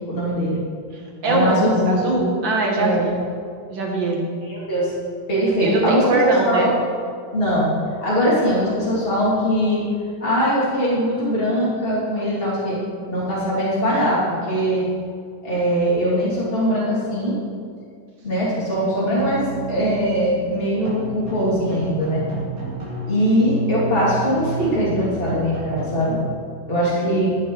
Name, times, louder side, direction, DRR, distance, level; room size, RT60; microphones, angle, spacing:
voice 1, 0.1-0.6 1.2-2.1 2.7-3.1 4.5-4.9 5.3-6.7 7.3-7.7 8.0-9.9 10.2-12.8 13.1-14.9 15.4-17.4 18.2-22.2 23.1-26.2 26.7-27.3, equal, 30° left, -7 dB, 2.9 m, -21 dB
voice 2, 0.9-3.1 3.7-4.3 5.6-6.7, right 2 dB, 90° right, -1 dB, 2.4 m, -22 dB
sound 1, 19.2-26.2, right 2 dB, 50° right, 2.5 m, -31 dB
14.0 x 7.2 x 4.7 m, 2.2 s
omnidirectional pair, 2.0 m